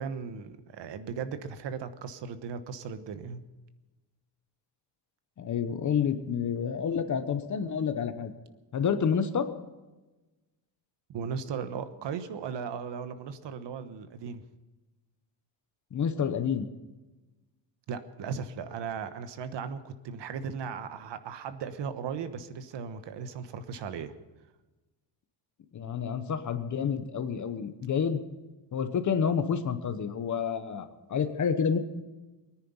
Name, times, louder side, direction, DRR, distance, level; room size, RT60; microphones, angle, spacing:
voice 1, 0.0-3.4 11.1-14.4 17.9-24.1, right 6 dB, 65° right, 11 dB, 1.2 m, -37 dB
voice 2, 5.4-8.3 8.7-9.5 15.9-16.7 25.7-28.2 28.7-31.8, left 7 dB, 40° left, 9 dB, 1.1 m, -29 dB
22.5 x 10.0 x 5.6 m, 1.1 s
cardioid pair, 180°, 46 cm